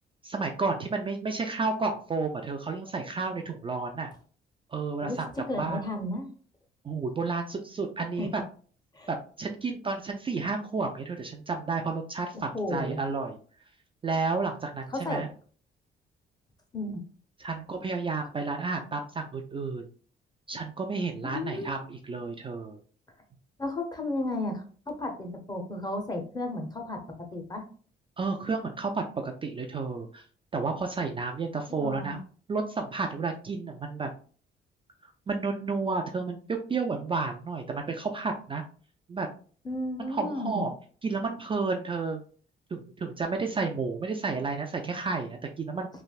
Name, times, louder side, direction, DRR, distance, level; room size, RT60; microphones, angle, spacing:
voice 1, 0.2-4.1 4.7-5.8 6.8-8.4 9.1-13.4 14.0-15.3 17.4-19.8 20.5-22.8 28.2-30.2 30.5-32.2 32.5-34.1 35.3-38.6 39.1-39.3 40.0-40.7 41.0-42.2 42.7-45.9, right 4 dB, 25° right, 3 dB, 0.4 m, -31 dB
voice 2, 5.5-6.3 8.2-8.3 8.9-9.1 12.3-13.0 14.9-15.3 16.7-17.0 21.2-21.7 23.6-27.6 31.7-32.2 39.6-40.7, left 2 dB, 20° left, 4 dB, 0.8 m, -33 dB
3.2 x 2.5 x 2.3 m, 0.42 s
cardioid pair, 90°, 20 cm